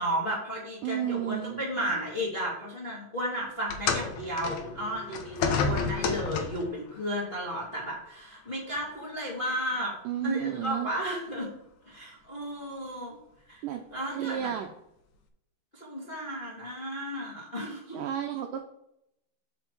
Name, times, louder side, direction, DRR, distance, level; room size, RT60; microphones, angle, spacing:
voice 1, 0.0-9.9 10.2-11.5 11.8-13.2 13.5-13.6 13.9-14.5 15.7-18.0, equal, 25° left, -5 dB, 1.2 m, -33 dB
voice 2, 0.8-1.6 10.1-10.9 13.6-13.8 14.1-14.7 17.9-18.6, right 11 dB, 80° right, 5 dB, 1.9 m, -32 dB
sound 1, 3.7-6.8 7.7-7.9 8.8-8.9, left 5 dB, 75° left, 1.8 m, -30 dB
7.0 x 4.5 x 5.9 m, 0.80 s
omnidirectional pair, 4.4 m